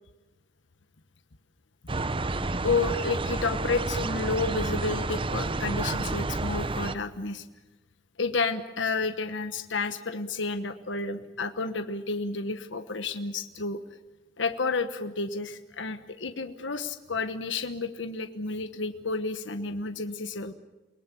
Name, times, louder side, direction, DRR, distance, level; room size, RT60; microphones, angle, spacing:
sound 1, 1.9-6.9, right 2 dB, 30° right, 0.8 m, -30 dB
voice 1, 2.6-7.4 8.2-13.8 14.4-20.5, left 4 dB, 70° left, 8 dB, 1.2 m, -31 dB
29.0 x 19.0 x 8.4 m, 1.1 s
head